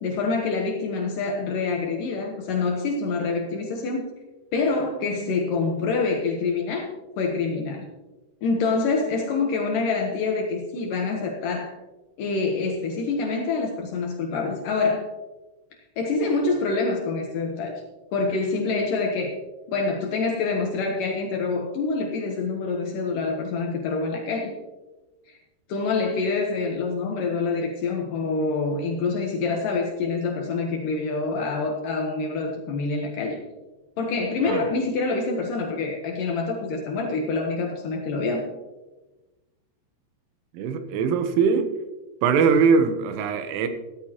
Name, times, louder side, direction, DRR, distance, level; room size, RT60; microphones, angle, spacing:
voice 1, 0.0-4.1 4.5-6.9 7.2-7.9 8.4-11.7 12.2-15.1 16.0-17.8 18.1-19.4 19.7-24.5 25.3-25.4 25.7-33.4 34.0-38.5, left 4 dB, 85° left, 0 dB, 1.9 m, -26 dB
voice 2, 40.5-41.7 42.2-43.7, right 5 dB, 85° right, 8 dB, 3.5 m, -21 dB
16.0 x 13.0 x 2.9 m, 1.1 s
omnidirectional pair, 5.6 m